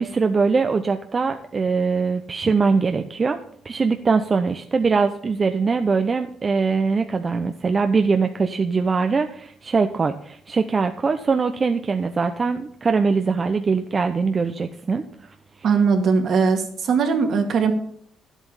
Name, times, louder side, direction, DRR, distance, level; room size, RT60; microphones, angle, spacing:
voice 1, 0.0-3.4 3.6-15.0, right 4 dB, 35° right, 7 dB, 0.7 m, -22 dB
voice 2, 15.6-17.7, right 5 dB, 65° right, 4 dB, 2.1 m, -20 dB
11.0 x 8.2 x 5.6 m, 0.65 s
cardioid pair, 90°, 0 cm